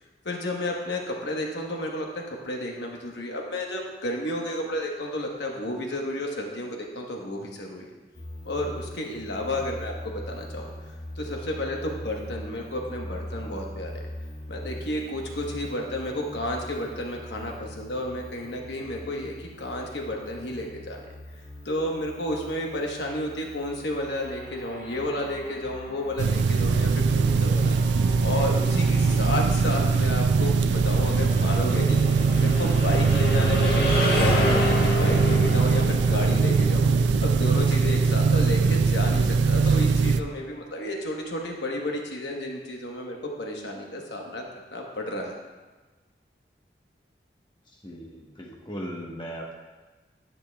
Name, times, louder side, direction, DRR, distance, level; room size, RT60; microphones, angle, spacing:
voice 1, 0.2-2.1 2.4-7.9 8.4-14.0 14.5-21.0 21.6-27.8 28.2-32.0 32.4-44.4 44.7-45.3, left 1 dB, 80° left, 0 dB, 1.1 m, -32 dB
sound 1, 8.1-27.8, left 1 dB, 45° left, 2.4 m, -42 dB
sound 2, 24.0-39.9, left 1 dB, 65° left, 1.5 m, -32 dB
sound 3, 26.2-40.2, right 4 dB, 80° right, 0.3 m, -21 dB
voice 2, 47.7-49.6, equal, 25° left, -1 dB, 1.0 m, -38 dB
9.9 x 8.6 x 2.3 m, 1.3 s
head